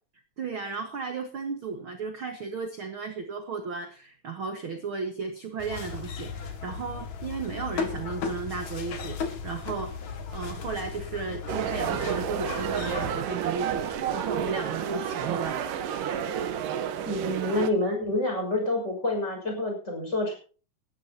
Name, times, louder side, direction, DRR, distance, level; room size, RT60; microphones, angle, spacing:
voice 1, 0.4-9.9 10.3-15.6, right 5 dB, 45° right, 5 dB, 2.0 m, -34 dB
sound 1, 5.6-13.2, left 5 dB, 60° left, 3.3 m, -36 dB
sound 2, 11.5-17.7, right 8 dB, 75° right, 2.8 m, -30 dB
voice 2, 17.0-20.3, left 2 dB, 20° left, 2 dB, 6.4 m, -28 dB
19.5 x 13.0 x 2.9 m, 0.38 s
omnidirectional pair, 3.9 m